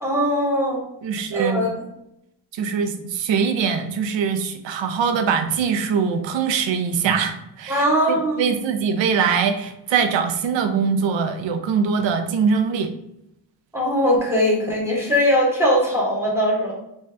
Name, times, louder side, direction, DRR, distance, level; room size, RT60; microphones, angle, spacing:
voice 1, 0.0-0.8 1.3-1.7 7.7-8.5 13.7-16.7, equal, 5° right, -3 dB, 0.8 m, -20 dB
voice 2, 1.0-1.7 2.5-12.9, right 6 dB, 75° right, 7 dB, 0.5 m, -22 dB
2.6 x 2.3 x 3.2 m, 0.81 s
wide cardioid pair, 125°, 45 cm